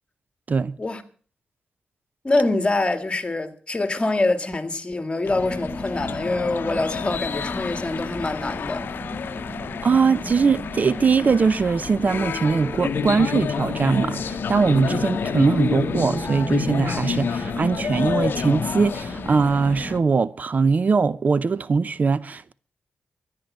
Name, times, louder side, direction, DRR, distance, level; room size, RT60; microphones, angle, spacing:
voice 1, 2.2-8.8, left 2 dB, 30° left, 2.0 m, -25 dB
sound 1, 5.3-20.0, left 7 dB, 70° left, 0.7 m, -30 dB
sound 2, 5.3-20.0, equal, ahead, 4.5 m, -35 dB
voice 2, 9.8-22.5, right 5 dB, 50° right, 0.6 m, -21 dB
13.5 x 10.5 x 7.4 m
cardioid pair, 75°, 4 cm